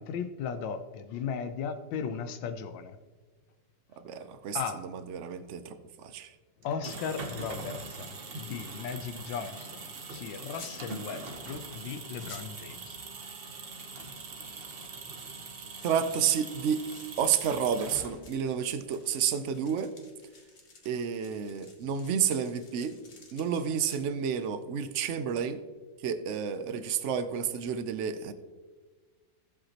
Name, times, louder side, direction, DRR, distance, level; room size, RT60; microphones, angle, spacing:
voice 1, 0.0-3.0 4.5-4.8 6.6-13.0, left 6 dB, 85° left, 9 dB, 1.4 m, -37 dB
voice 2, 4.0-6.3 15.8-16.8 17.2-19.9 20.8-23.0 23.3-25.6 26.0-28.3, right 7 dB, 75° right, 10 dB, 0.6 m, -30 dB
sound 1, 6.6-18.5, right 3 dB, 40° right, 0.9 m, -42 dB
sound 2, 10.5-10.8 11.8-11.9 12.1-12.6 13.9-24.0, left 3 dB, 40° left, 1.5 m, -55 dB
14.5 x 7.9 x 2.9 m, 1.4 s
omnidirectional pair, 2.0 m